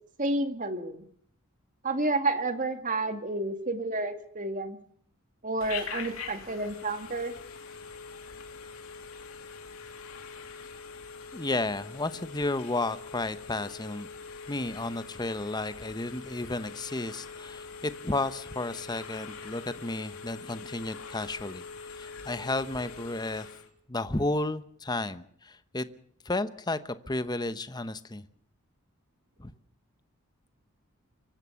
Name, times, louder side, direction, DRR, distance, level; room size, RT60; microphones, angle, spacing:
voice 1, 0.2-1.0 1.8-4.8 5.4-7.3, right 2 dB, 35° right, 8 dB, 2.0 m, -30 dB
Telephone, 5.6-23.7, left 5 dB, 70° left, 3.0 m, -43 dB
voice 2, 11.3-14.1 14.5-21.6 21.9-23.5 23.9-25.9 26.2-28.2 29.4-29.5, left 2 dB, 20° left, 13 dB, 0.9 m, -32 dB
24.5 x 15.0 x 7.1 m, 0.64 s
head